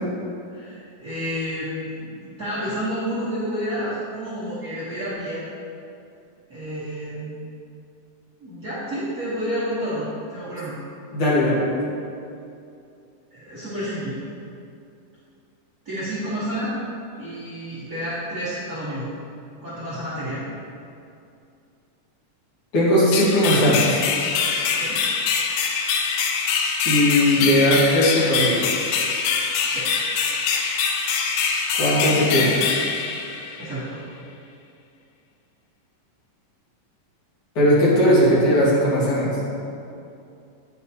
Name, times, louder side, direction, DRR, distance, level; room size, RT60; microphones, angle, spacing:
voice 1, 0.5-5.4 6.5-7.4 8.4-10.8 13.3-14.2 15.8-16.7 17.2-19.1 19.6-20.4 24.7-25.0 29.7-29.9 33.6-34.0, equal, 70° right, -12 dB, 0.8 m, -30 dB
voice 2, 11.1-11.8 22.7-24.0 26.8-28.6 31.8-32.6 37.6-39.4, equal, 50° left, -8 dB, 2.3 m, -18 dB
sound 1, 23.1-33.8, left 6 dB, 85° left, 2.2 m, -24 dB
9.0 x 5.5 x 2.8 m, 2.6 s
omnidirectional pair, 3.7 m